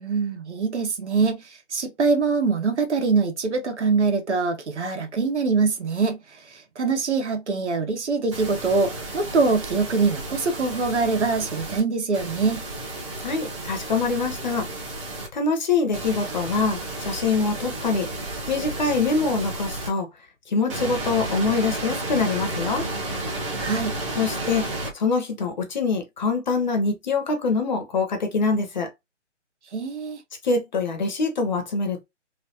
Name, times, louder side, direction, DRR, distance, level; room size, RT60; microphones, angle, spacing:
voice 1, 0.0-12.7 23.6-23.9 29.7-30.2, right 4 dB, 65° right, 1.1 m, -24 dB
sound 1, 8.3-11.8 12.1-15.3 15.9-19.9 20.7-24.9, right 2 dB, 25° right, 0.9 m, -32 dB
voice 2, 13.2-14.7 15.3-18.1 18.5-20.1 20.5-22.9 24.2-28.9 30.4-32.0, left 4 dB, 40° left, 0.7 m, -24 dB
3.2 x 2.1 x 2.8 m
figure-of-eight pair, 150°, 37 cm